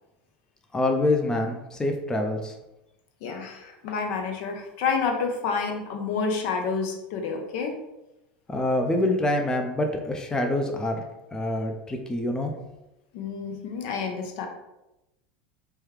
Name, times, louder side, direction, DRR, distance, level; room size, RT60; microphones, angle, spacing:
voice 1, 0.7-2.5 8.5-11.0 11.3-12.5, left 1 dB, 15° left, 3 dB, 0.4 m, -26 dB
voice 2, 3.2-7.8 13.1-14.5, left 5 dB, 60° left, 4 dB, 0.6 m, -29 dB
3.3 x 2.2 x 3.2 m, 0.92 s
hypercardioid pair, 95°, 5 cm